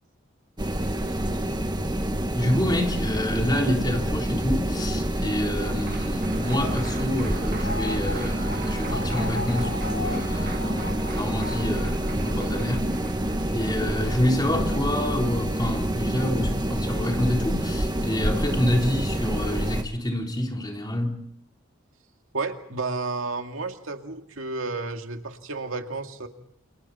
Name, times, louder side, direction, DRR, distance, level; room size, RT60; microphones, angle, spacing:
sound 1, 0.6-19.8, right 1 dB, 20° right, 1.6 m, -27 dB
voice 1, 2.3-12.9 13.5-21.2, left 1 dB, 20° left, 3.9 m, -27 dB
Applause, 4.5-14.7 16.1-16.2 16.5-17.5, right 5 dB, 50° right, 2.3 m, -44 dB
sound 2, 6.4-13.1 13.5-13.6, left 2 dB, 70° left, 4.3 m, -38 dB
voice 2, 22.3-26.3, right 3 dB, 90° right, 2.2 m, -31 dB
29.0 x 29.0 x 4.3 m
head